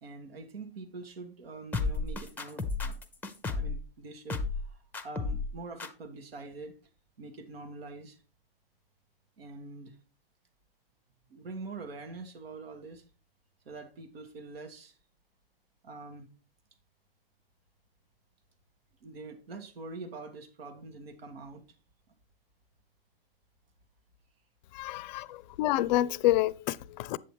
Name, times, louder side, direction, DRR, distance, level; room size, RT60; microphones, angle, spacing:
voice 1, 0.0-3.0 3.4-6.7 7.2-8.2 9.4-10.0 11.3-13.1 13.6-15.0 15.8-16.3 19.0-21.6 25.2-25.3, right 3 dB, 85° right, 1.5 m, -44 dB
sound 1, 1.7-3.8 4.3-4.7 4.9-5.5 5.8-5.9, left 3 dB, 5° left, 0.6 m, -32 dB
voice 2, 24.7-27.2, left 15 dB, 50° left, 0.4 m, -28 dB
8.3 x 6.9 x 3.0 m
hypercardioid pair, 130°, 29 cm